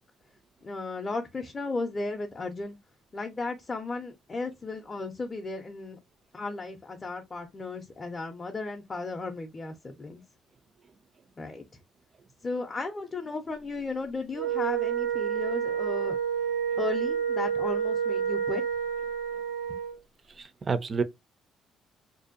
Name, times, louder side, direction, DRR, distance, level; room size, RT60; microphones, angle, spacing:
voice 1, 0.6-2.8 3.1-6.0 6.3-10.2 11.4-11.6 12.4-16.2 16.8-18.6, left 3 dB, 30° left, 0.4 m, -35 dB
Wind instrument woodwind instrument, 14.3-20.0, right 8 dB, 90° right, 0.6 m, -29 dB
voice 2, 20.4-21.0, right 5 dB, 40° right, 0.3 m, -29 dB
2.5 x 2.2 x 2.4 m
supercardioid pair, 80°, 0 cm